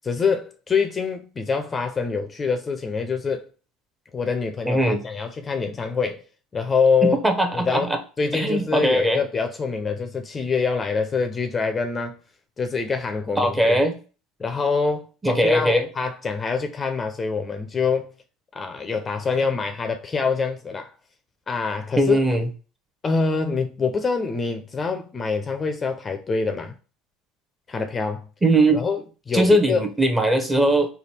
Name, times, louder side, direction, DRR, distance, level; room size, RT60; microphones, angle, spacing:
voice 1, 0.0-3.5 4.1-6.2 6.5-7.2 7.5-7.9 8.2-12.2 12.6-13.8 14.4-18.1 18.5-20.9 21.5-22.3 23.0-26.8 27.7-28.2 28.7-29.8, left 5 dB, 25° left, 0.5 m, -25 dB
voice 2, 4.7-5.0 7.0-8.0 8.3-9.2 13.4-14.0 15.2-15.9 22.0-22.5 28.4-28.8 29.3-30.9, right 1 dB, 10° right, 0.8 m, -20 dB
3.3 x 2.3 x 4.1 m
hypercardioid pair, 85°, 0 cm